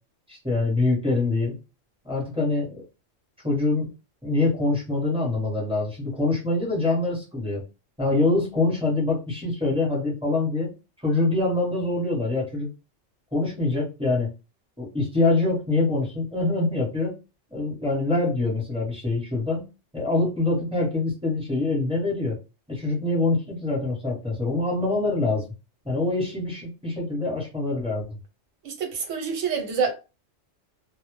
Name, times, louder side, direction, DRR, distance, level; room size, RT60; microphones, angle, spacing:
voice 1, 0.3-1.6 2.0-2.8 3.4-3.9 4.2-7.6 8.0-10.7 11.0-12.7 13.3-14.3 14.8-17.1 17.5-19.6 19.9-22.4 22.7-25.5 25.8-28.2, left 2 dB, 5° right, 0.7 m, -24 dB
voice 2, 28.6-29.9, right 6 dB, 75° right, 1.0 m, -27 dB
2.0 x 2.0 x 3.0 m
omnidirectional pair, 1.3 m